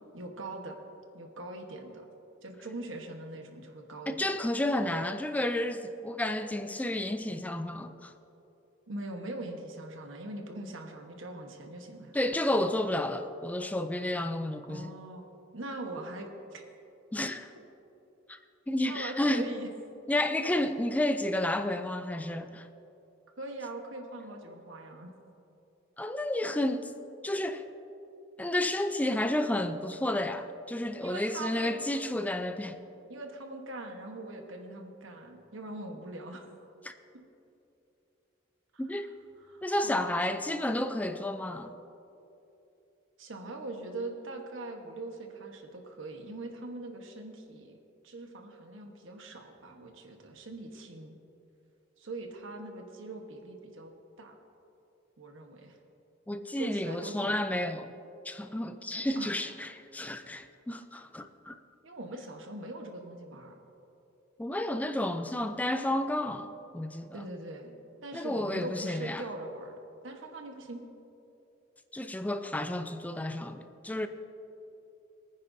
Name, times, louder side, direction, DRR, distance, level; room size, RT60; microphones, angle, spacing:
voice 1, 0.1-0.8 1.1-2.1 2.4-4.3 8.9-12.2 14.7-15.2 15.5-16.6 18.8-19.7 23.4-25.1 31.0-31.8 33.1-36.5 37.1-37.2 38.7-38.8 39.5-40.4 43.2-47.8 48.0-51.2 52.0-53.9 54.2-54.3 55.2-55.8 56.5-57.3 59.1-59.3 61.8-63.6 67.1-67.7 68.0-69.8 70.0-70.8, right 2 dB, 85° right, 1.2 m, -42 dB
voice 2, 4.1-8.1 12.1-14.9 17.1-17.5 18.3-18.4 18.7-19.5 20.1-22.7 26.0-26.9 27.2-27.7 28.4-32.8 36.8-36.9 38.8-39.1 39.6-41.7 56.3-57.9 58.2-61.5 64.4-67.2 68.1-69.2 71.9-74.1, left 1 dB, 10° left, 0.3 m, -31 dB
22.5 x 9.6 x 2.7 m
head